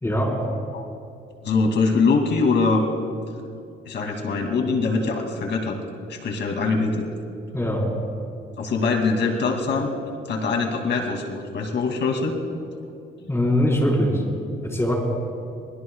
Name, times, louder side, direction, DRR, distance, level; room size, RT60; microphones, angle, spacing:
voice 1, 0.0-0.3 7.5-7.9 13.3-14.1 14.7-14.9, left 1 dB, 15° left, -2 dB, 4.7 m, -21 dB
voice 2, 1.4-2.8 3.9-5.8 6.1-7.1 8.6-9.9 10.3-12.4 13.2-13.3, left 4 dB, 65° left, 2 dB, 2.6 m, -23 dB
27.0 x 20.5 x 2.4 m, 2.5 s
cardioid pair, 90°, 20 cm